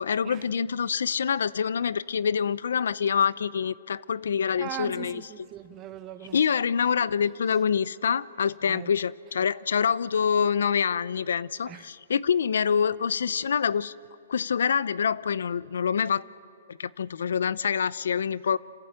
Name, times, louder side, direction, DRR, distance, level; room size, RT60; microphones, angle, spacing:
voice 1, 0.0-5.2 6.3-13.9 14.3-16.2 16.7-18.6, left 7 dB, 75° left, 0.6 m, -26 dB
voice 2, 4.6-6.5 8.6-8.9 11.7-11.9, right 11 dB, 25° right, 1.0 m, -40 dB
27.5 x 14.5 x 8.9 m
hypercardioid pair, 155°, 0 cm